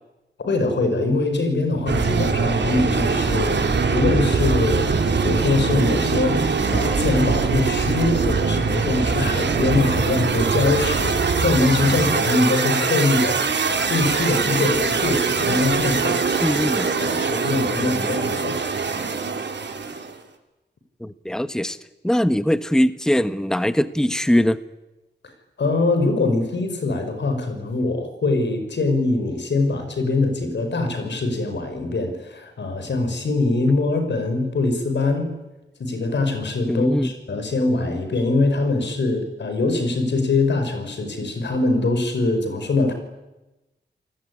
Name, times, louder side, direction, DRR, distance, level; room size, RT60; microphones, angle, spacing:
voice 1, 0.4-16.4 17.0-18.6 25.6-35.3 35.8-42.9, left 3 dB, 90° left, 7 dB, 5.6 m, -23 dB
sound 1, 1.9-20.2, right 4 dB, 80° right, 2.8 m, -22 dB
voice 2, 16.4-16.9 21.0-21.8 22.0-24.6 36.7-37.1, equal, 5° left, 12 dB, 1.1 m, -21 dB
29.0 x 19.0 x 9.8 m, 1.0 s
wide cardioid pair, 70°, 18 cm